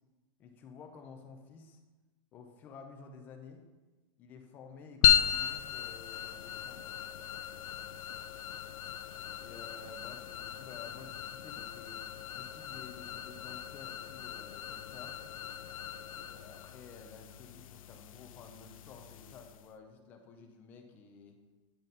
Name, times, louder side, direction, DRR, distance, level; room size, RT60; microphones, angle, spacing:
voice 1, 0.4-1.8 2.3-3.7 4.2-7.0 9.4-12.0 12.3-15.2 16.0-21.4, left 5 dB, 10° left, 4 dB, 0.3 m, -52 dB
sound 1, 5.0-19.7, left 10 dB, 85° left, 0.4 m, -35 dB
8.9 x 4.0 x 5.3 m, 1.2 s
supercardioid pair, 180°, 17 cm